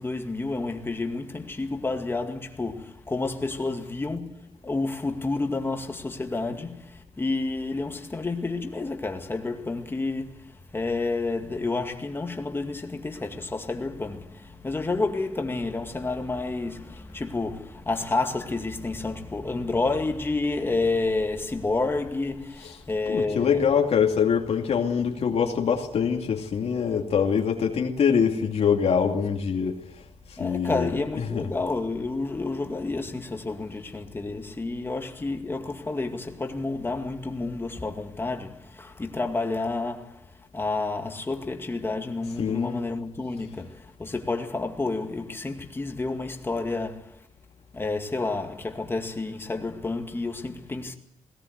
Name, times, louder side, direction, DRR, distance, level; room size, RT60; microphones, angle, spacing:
voice 1, 0.0-23.7 25.3-25.4 30.4-40.3 40.5-47.2 47.7-50.9, left 3 dB, 20° left, 2.1 m, -30 dB
voice 2, 23.1-29.8 30.4-30.9 31.3-31.5 42.4-42.8, left 7 dB, 60° left, 2.5 m, -24 dB
20.0 x 18.5 x 8.1 m
wide cardioid pair, 140°, 12 cm